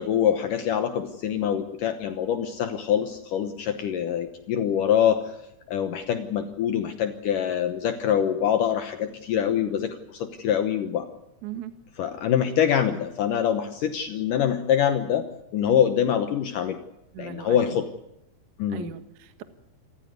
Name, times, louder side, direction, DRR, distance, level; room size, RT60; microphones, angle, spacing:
voice 1, 0.0-5.3 5.7-11.1 12.0-15.3 15.5-16.8 17.2-17.9 18.6-18.9, left 9 dB, 80° left, 8 dB, 1.9 m, -24 dB
voice 2, 11.4-11.7 17.1-17.8 18.7-19.4, right 11 dB, 60° right, 9 dB, 2.1 m, -38 dB
27.5 x 14.5 x 9.5 m, 0.86 s
omnidirectional pair, 5.4 m